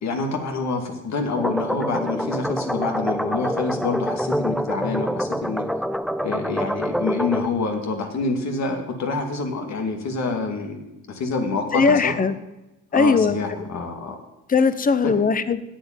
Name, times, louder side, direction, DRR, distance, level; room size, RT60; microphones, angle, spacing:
voice 1, 0.0-5.7 6.2-10.8 11.1-12.1 12.9-14.1 15.0-15.1, left 3 dB, 65° left, 4 dB, 2.4 m, -27 dB
sound 1, 1.4-7.5, equal, ahead, 0.3 m, -26 dB
voice 2, 11.7-12.4 12.9-13.4 14.5-15.6, left 5 dB, 30° left, 13 dB, 0.8 m, -19 dB
8.6 x 8.0 x 9.1 m, 0.96 s
cardioid pair, 90°, 30 cm